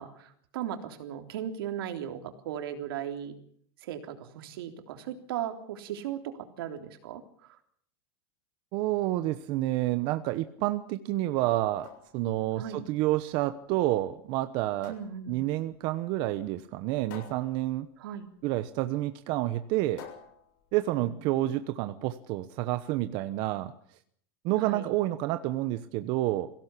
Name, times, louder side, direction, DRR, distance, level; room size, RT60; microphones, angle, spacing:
voice 1, 0.0-3.3 3.8-7.6 12.5-12.8 14.9-15.4 18.0-18.3 21.0-21.2 24.6-24.9, right 10 dB, 75° right, 7 dB, 3.4 m, -37 dB
voice 2, 8.7-14.9 15.3-17.9 18.4-20.0 20.7-23.7 24.4-26.5, right 15 dB, 40° right, 11 dB, 1.0 m, -29 dB
sound 1, 11.5-21.5, left 8 dB, 55° left, 7.2 m, -53 dB
23.0 x 17.0 x 8.4 m, 0.64 s
supercardioid pair, 170°, 12 cm